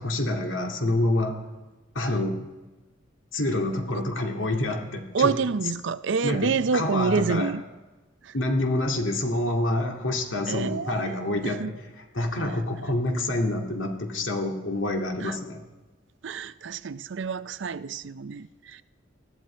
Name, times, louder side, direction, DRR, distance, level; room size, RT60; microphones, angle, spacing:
voice 1, 0.0-1.4 1.9-2.4 3.3-5.3 6.2-7.5 8.3-11.6 12.2-15.6, left 1 dB, 75° left, 3 dB, 2.2 m, -27 dB
voice 2, 5.1-7.6 8.2-8.3 10.5-11.7 15.2-15.4 16.2-18.8, right 5 dB, 65° right, 15 dB, 0.5 m, -28 dB
20.5 x 14.0 x 4.4 m, 1.2 s
head